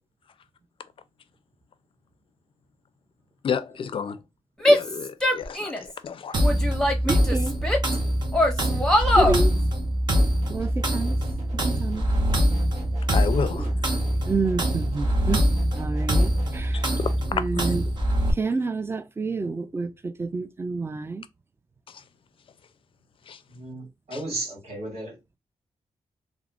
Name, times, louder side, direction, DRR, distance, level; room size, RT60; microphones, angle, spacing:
voice 1, 3.4-4.2 4.6-6.4 8.9-9.1 13.1-13.7 16.7-16.8 17.5-17.7 21.9-22.0 23.3-23.4 24.1-24.2, left 6 dB, 50° left, 0.4 m, -31 dB
Female speech woman speaking / Yell, 4.6-5.9 6.4-8.0 8.3-9.4, left 1 dB, 5° left, 0.7 m, -22 dB
sound 1, 6.3-18.3, equal, 40° right, 0.7 m, -24 dB
voice 2, 7.0-7.5 9.2-9.6 10.5-11.2 11.6-12.1 13.5-13.7 14.3-15.5 15.7-16.8 17.3-17.8 18.3-21.2, right 3 dB, 20° right, 0.3 m, -29 dB
sound 2, 10.4-17.3, right 1 dB, 80° right, 0.8 m, -41 dB
voice 3, 23.5-25.2, right 2 dB, 60° right, 1.7 m, -34 dB
3.5 x 2.0 x 2.4 m
wide cardioid pair, 110°, 12 cm